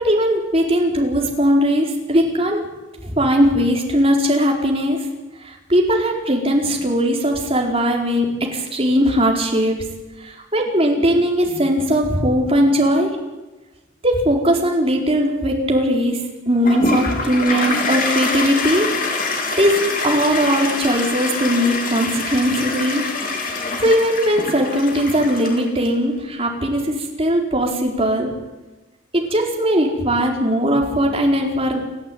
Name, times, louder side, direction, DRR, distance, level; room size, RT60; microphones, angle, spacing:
voice 1, 0.0-2.6 3.0-5.1 5.4-9.8 10.2-13.2 14.0-18.9 19.6-23.0 23.5-28.3 29.1-31.8, equal, 30° right, 1 dB, 4.5 m, -19 dB
Toilet flush, 16.7-25.9, left 3 dB, 40° left, 3.8 m, -24 dB
29.5 x 11.5 x 9.4 m, 1.1 s
head